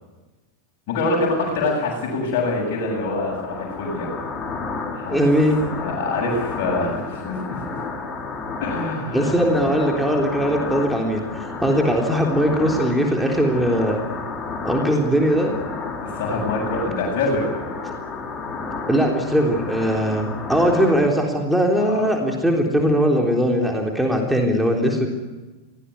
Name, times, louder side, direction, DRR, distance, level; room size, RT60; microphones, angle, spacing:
voice 1, 0.9-4.1 4.9-5.2 5.7-7.4 8.6-9.4 16.0-17.5 21.8-22.1, left 3 dB, 45° left, -4 dB, 7.8 m, -25 dB
sound 1, 2.4-21.0, left 4 dB, 15° left, 4.0 m, -31 dB
voice 2, 5.1-5.6 9.1-14.0 14.6-15.5 18.9-25.1, equal, ahead, 1 dB, 3.7 m, -20 dB
24.5 x 18.0 x 9.7 m, 1.2 s
figure-of-eight pair, 90°, 0 cm